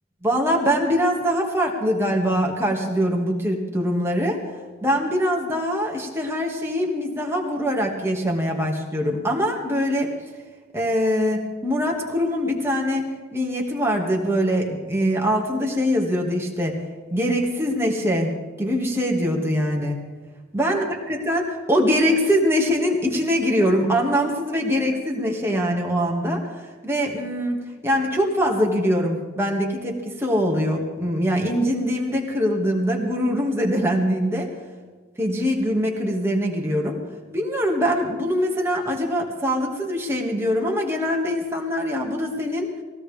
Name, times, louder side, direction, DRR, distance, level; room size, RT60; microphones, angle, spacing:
voice 1, 0.2-4.4 4.8-10.1 10.7-13.0 13.3-16.8 17.1-18.3 18.6-20.1 20.5-20.8 21.1-26.5 26.8-27.6 27.8-34.5 35.2-37.0 37.3-42.7, equal, 10° right, -1 dB, 2.1 m, -23 dB
21.0 x 16.5 x 3.6 m, 1.4 s
head